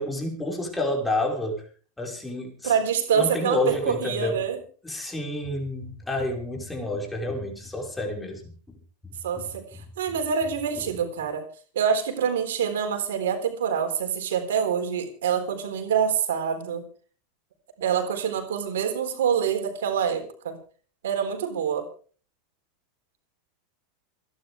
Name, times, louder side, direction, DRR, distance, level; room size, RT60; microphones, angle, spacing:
voice 1, 0.0-1.6 2.0-2.8 3.1-4.4 4.8-8.8 9.0-9.8 10.7-10.9, left 1 dB, 10° left, 1 dB, 5.4 m, -30 dB
voice 2, 2.6-4.6 9.2-11.4 11.7-16.8 17.8-20.6 21.0-21.8, right 7 dB, 80° right, 6 dB, 4.0 m, -26 dB
28.0 x 10.5 x 3.6 m, 0.40 s
hypercardioid pair, 105°, 0 cm